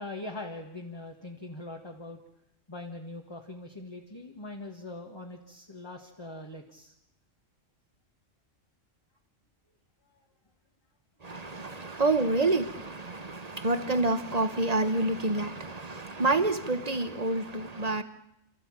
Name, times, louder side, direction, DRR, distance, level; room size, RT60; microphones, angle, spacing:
voice 1, 0.0-2.2 2.7-6.9, left 2 dB, 20° left, 1.7 m, -42 dB
voice 2, 11.2-18.0, right 2 dB, 30° right, 1.1 m, -28 dB
28.0 x 14.0 x 8.9 m
omnidirectional pair, 1.3 m